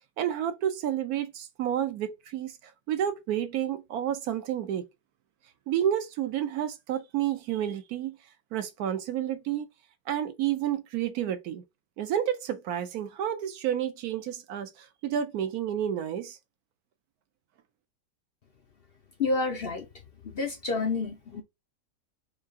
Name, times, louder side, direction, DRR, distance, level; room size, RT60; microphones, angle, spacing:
voice 1, 0.2-2.5 2.9-4.8 5.7-8.2 8.5-9.7 10.1-11.6 12.0-16.4, right 10 dB, 65° right, 1.0 m, -30 dB
voice 2, 19.2-19.9 20.3-21.4, left 3 dB, 55° left, 0.6 m, -29 dB
4.6 x 2.4 x 3.5 m
omnidirectional pair, 1.9 m